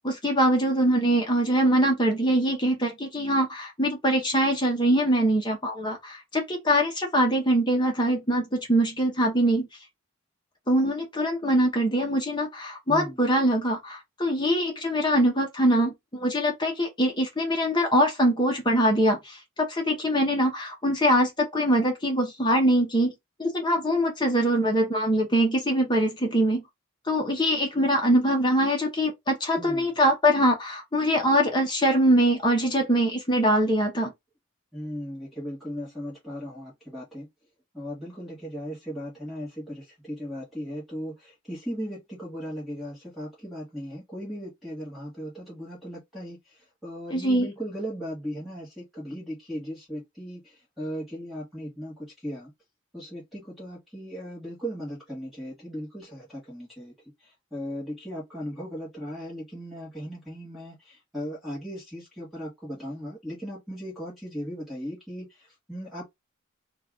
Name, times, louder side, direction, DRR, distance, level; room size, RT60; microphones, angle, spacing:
voice 1, 0.0-9.7 10.7-23.1 23.4-26.6 27.1-34.1 47.1-47.5, equal, 20° left, 1.0 m, -23 dB
voice 2, 12.9-13.3 29.6-29.9 34.7-37.3 37.7-52.5 52.9-56.9 57.2-66.0, equal, ahead, 1.7 m, -37 dB
3.2 x 2.5 x 3.6 m
head